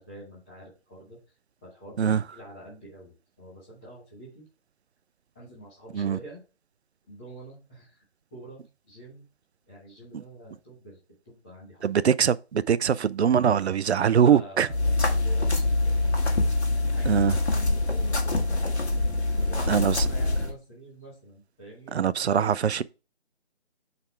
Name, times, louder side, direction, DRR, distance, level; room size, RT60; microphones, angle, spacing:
voice 1, 0.1-1.2 1.6-4.4 5.3-6.4 7.1-8.0 8.3-9.2 9.7-11.8 14.2-16.3 16.7-18.7 19.3-22.0 22.3-22.6, right 1 dB, 10° left, 1.1 m, -46 dB
voice 2, 11.8-14.7 17.1-17.3 19.7-20.1 21.9-22.8, right 8 dB, 70° right, 0.5 m, -22 dB
sound 1, 14.7-20.5, left 2 dB, 75° left, 1.7 m, -25 dB
5.6 x 4.1 x 4.3 m
figure-of-eight pair, 170°, 34 cm